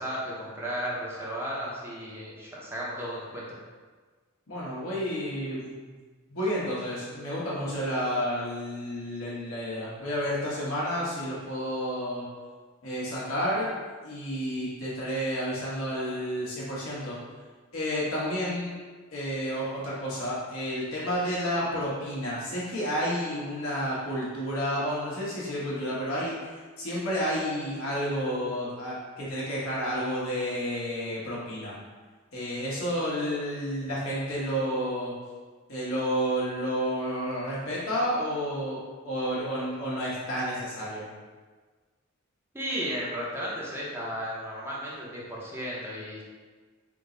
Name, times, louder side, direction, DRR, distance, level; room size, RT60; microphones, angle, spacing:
voice 1, 0.0-3.5 42.5-46.2, equal, 10° right, -6 dB, 0.6 m, -34 dB
voice 2, 4.5-6.0 6.3-12.2 12.8-13.7 14.0-17.2 17.7-18.7 19.1-31.8 32.3-35.1 35.7-41.1, equal, 85° left, -6 dB, 1.1 m, -30 dB
3.6 x 2.0 x 3.7 m, 1.4 s
head